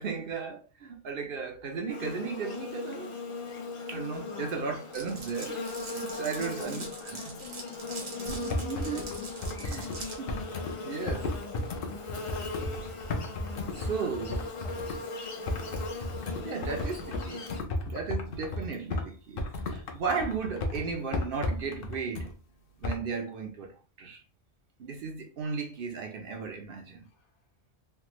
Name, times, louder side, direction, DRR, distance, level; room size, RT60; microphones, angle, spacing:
voice 1, 0.0-3.1 3.9-5.6 5.9-7.3 8.3-9.0 9.6-9.9 10.2-10.3 10.8-11.3 13.7-14.4 16.4-17.5 17.9-22.3 22.8-24.2 24.8-27.0, right 5 dB, 60° right, 0.7 m, -35 dB
Buzz, 1.9-17.6, left 3 dB, 40° left, 0.4 m, -39 dB
voice 2, 4.2-4.7 6.4-8.6 9.0-9.9 10.3-10.7 13.8-15.1 27.0-27.4, left 7 dB, 90° left, 1.0 m, -48 dB
Glass, 4.9-10.2, right 3 dB, 80° right, 1.3 m, -43 dB
sound 1, 8.3-10.7 11.1-15.0 15.5-19.1 19.4-22.3 22.8-23.0, left 2 dB, 60° left, 0.8 m, -34 dB
3.3 x 2.1 x 3.0 m
omnidirectional pair, 1.2 m